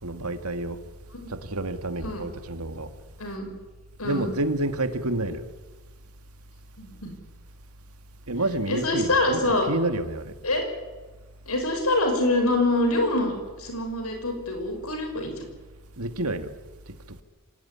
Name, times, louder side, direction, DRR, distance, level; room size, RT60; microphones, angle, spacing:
voice 1, 0.0-0.8 1.3-2.9 4.0-5.5 8.3-10.3 16.0-16.5, right 2 dB, 80° right, 9 dB, 2.1 m, -29 dB
voice 2, 3.2-3.5 4.0-4.3 6.8-7.1 8.7-9.7 10.4-10.6 11.5-15.4, left 2 dB, 75° left, 5 dB, 6.1 m, -25 dB
25.5 x 18.5 x 10.0 m, 1.3 s
head